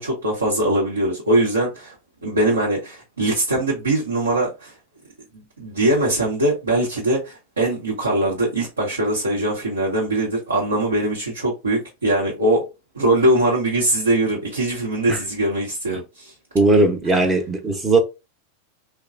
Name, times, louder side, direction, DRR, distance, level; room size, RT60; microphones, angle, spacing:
voice 1, 0.0-1.9 2.2-4.7 5.3-12.7 12.9-16.3 17.1-17.2, right 1 dB, 85° right, 0.9 m, -21 dB
voice 2, 16.5-18.0, right 2 dB, 20° right, 0.7 m, -18 dB
3.0 x 2.2 x 2.4 m
hypercardioid pair, 95°, 0 cm